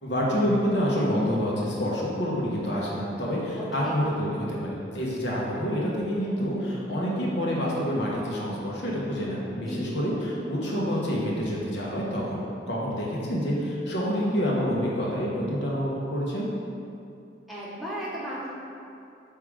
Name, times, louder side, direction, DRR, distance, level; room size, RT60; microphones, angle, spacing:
voice 1, 0.0-16.5, equal, 65° left, -4 dB, 1.1 m, -27 dB
voice 2, 3.6-3.9 9.6-9.9 17.5-18.5, equal, ahead, -8 dB, 1.0 m, -35 dB
5.7 x 3.7 x 4.8 m, 2.6 s
head